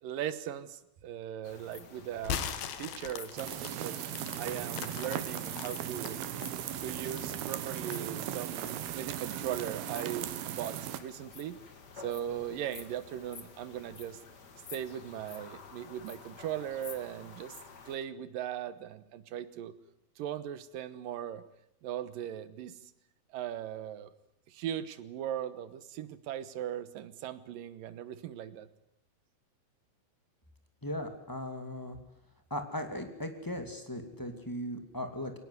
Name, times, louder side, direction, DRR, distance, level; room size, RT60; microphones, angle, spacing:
voice 1, 0.0-2.4 2.8-4.0 4.4-6.3 6.8-11.6 12.0-14.2 14.7-17.6 17.9-19.8 20.2-21.4 21.8-22.8 23.3-24.1 24.5-28.7, right 10 dB, 70° right, 14 dB, 2.7 m, -39 dB
sound 1, 1.4-18.0, left 5 dB, 40° left, 1.6 m, -51 dB
sound 2, 2.2-6.2 6.6-7.9, left 8 dB, 80° left, 3.4 m, -39 dB
sound 3, 3.4-11.0, right 11 dB, 90° right, 3.2 m, -38 dB
voice 2, 30.8-32.0 32.5-35.3, left 1 dB, 5° left, 6 dB, 1.9 m, -38 dB
22.0 x 19.0 x 9.6 m, 0.77 s
omnidirectional pair, 4.3 m